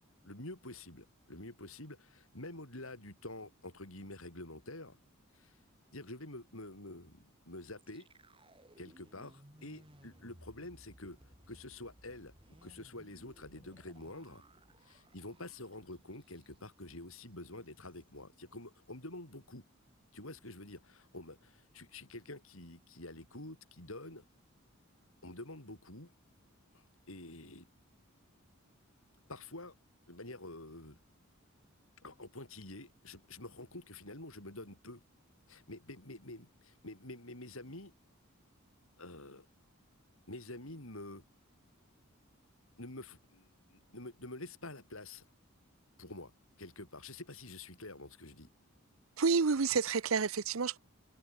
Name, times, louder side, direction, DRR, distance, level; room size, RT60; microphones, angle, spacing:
voice 1, 0.2-5.0 5.3-5.6 5.9-8.1 8.8-12.3 12.6-14.4 14.8-19.6 20.1-24.2 25.2-26.1 26.7-27.7 29.3-29.7 30.1-31.0 32.0-35.0 35.5-37.9 39.0-39.4 40.3-41.2 42.8-45.3 46.0-46.3 46.6-48.5, left 2 dB, 75° left, 6.6 m, -48 dB
sound 1, 7.8-16.8 17.1-17.3 17.6-18.0, right 1 dB, 25° right, 6.0 m, -61 dB
voice 2, 49.2-50.8, right 5 dB, 70° right, 0.7 m, -29 dB
head